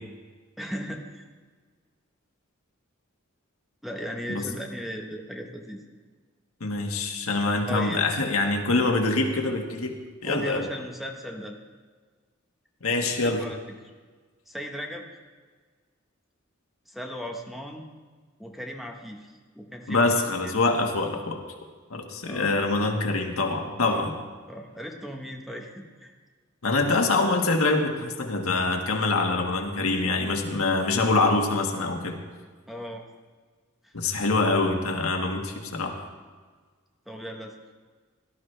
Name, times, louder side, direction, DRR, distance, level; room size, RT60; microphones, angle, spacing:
voice 1, 0.6-1.2 3.8-5.8 7.6-8.0 10.2-11.6 13.0-13.6 14.5-15.1 16.9-17.9 18.4-20.6 22.2-22.5 23.8-24.1 24.5-26.1 32.7-33.0 33.8-33.9 37.1-37.5, equal, ahead, 2 dB, 1.1 m, -37 dB
voice 2, 6.6-9.9 10.2-10.7 12.8-13.4 19.9-21.4 21.9-24.1 26.6-32.2 33.9-35.9, left 3 dB, 85° left, 3 dB, 1.6 m, -25 dB
17.0 x 12.5 x 3.3 m, 1.5 s
head